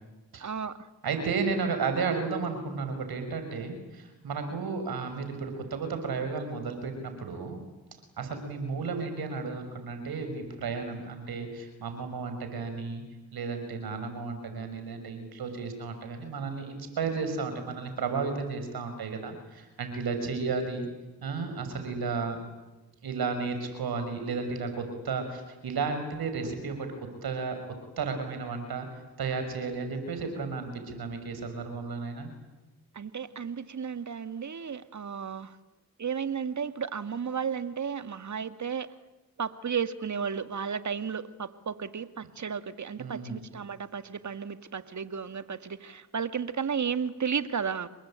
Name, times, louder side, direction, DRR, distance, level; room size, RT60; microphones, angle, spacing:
voice 1, 0.4-0.7 33.0-35.5 36.0-38.9 39.4-47.9, right 7 dB, 50° right, 11 dB, 2.0 m, -33 dB
voice 2, 1.0-7.6 8.2-13.0 13.3-20.9 21.2-22.4 23.0-26.9 27.2-27.6 28.0-28.9 29.2-32.3 43.0-43.4, right 4 dB, 70° right, 7 dB, 6.4 m, -33 dB
28.0 x 22.0 x 9.0 m, 1.1 s
supercardioid pair, 40°, 38 cm